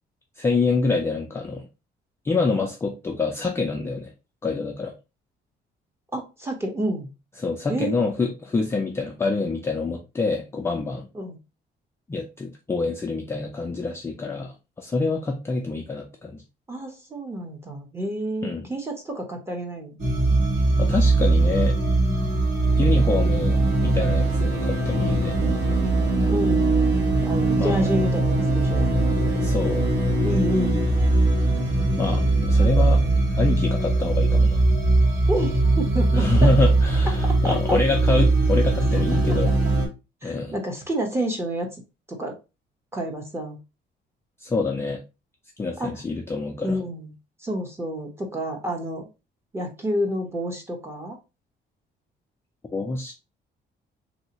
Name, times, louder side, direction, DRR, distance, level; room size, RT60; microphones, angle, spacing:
voice 1, 0.4-1.7 2.2-4.1 4.4-4.9 7.4-11.1 12.1-16.4 18.4-18.7 20.8-21.8 22.8-25.4 27.6-27.8 29.4-29.9 32.0-33.0 33.4-34.6 36.1-39.5 40.2-40.6 44.4-45.0 45.6-46.8 52.7-53.1, left 3 dB, 15° left, 1 dB, 0.3 m, -26 dB
voice 2, 6.1-7.1 7.7-8.0 11.1-11.4 16.7-20.0 26.3-26.8 27.2-28.9 30.2-30.8 32.6-32.7 35.3-36.5 37.2-37.8 39.1-39.4 40.2-41.7 42.1-42.3 42.9-43.6 45.8-45.9 46.6-47.1 47.4-49.1 49.5-51.2, right 1 dB, 15° right, 3 dB, 0.7 m, -29 dB
sound 1, 20.0-39.9, right 2 dB, 65° right, 1.3 m, -20 dB
3.3 x 2.7 x 2.8 m, 0.28 s
cardioid pair, 165°, 19 cm